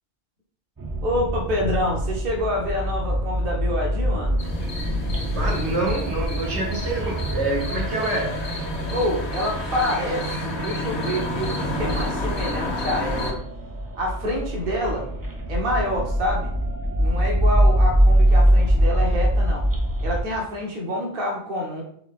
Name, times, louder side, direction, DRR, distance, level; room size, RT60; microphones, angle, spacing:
sound 1, 0.8-20.2, equal, 25° right, 0.4 m, -24 dB
voice 1, 1.0-4.4 8.9-13.4 14.0-15.1 15.5-16.5 17.0-19.7 20.0-21.8, left 1 dB, 55° right, -1 dB, 1.0 m, -27 dB
sound 2, 4.4-13.3, left 1 dB, 70° left, 1.2 m, -30 dB
voice 2, 5.3-8.4, right 2 dB, 75° right, -1 dB, 1.4 m, -26 dB
3.7 x 3.6 x 3.6 m, 0.67 s
omnidirectional pair, 1.2 m